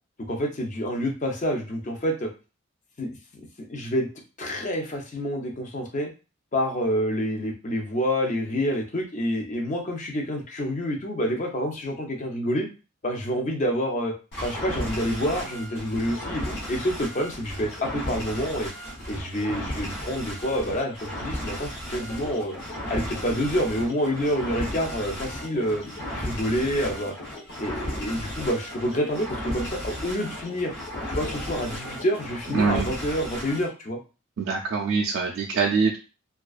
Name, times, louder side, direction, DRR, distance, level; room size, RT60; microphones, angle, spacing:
voice 1, 0.3-2.3 3.0-3.1 3.7-4.1 4.4-6.1 6.5-12.7 13.0-14.1 14.4-18.7 19.1-22.6 22.9-25.8 26.1-27.1 27.6-30.7 31.1-34.0, equal, 35° left, 2 dB, 0.5 m, -27 dB
sound 1, 14.3-33.7, equal, 55° left, 1.0 m, -35 dB
sound 2, 21.9-32.7, left 2 dB, 80° left, 0.9 m, -44 dB
voice 2, 32.5-32.9 34.4-36.0, right 5 dB, 70° right, -1 dB, 0.3 m, -24 dB
2.3 x 2.2 x 2.3 m, 0.33 s
head